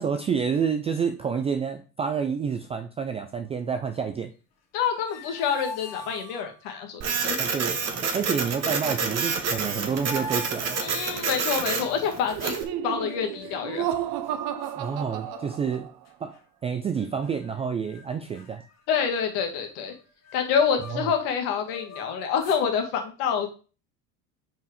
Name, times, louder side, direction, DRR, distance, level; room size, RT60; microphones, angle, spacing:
voice 1, 0.0-4.3 7.4-10.8 14.8-15.9 16.2-18.6 20.9-21.1, right 6 dB, 15° right, 7 dB, 0.3 m, -29 dB
voice 2, 4.7-7.4 10.8-12.6 12.8-14.0 18.9-19.9 20.3-23.5, left 7 dB, 60° left, 4 dB, 2.0 m, -27 dB
sound 1, 4.8-6.8 9.0-9.1 9.3-11.5 12.9-13.7 14.2-14.3 14.6-15.7 16.0-16.4 17.0-17.6 17.9-18.0 18.3-21.2 21.6-22.7, equal, 30° left, 2.1 m, -43 dB
Printer, 7.0-12.6, right 5 dB, 30° right, 1.5 m, -28 dB
Laughter, 12.3-16.0, right 11 dB, 45° right, 1.0 m, -32 dB
6.0 x 4.6 x 4.9 m, 0.36 s
hypercardioid pair, 80°, 49 cm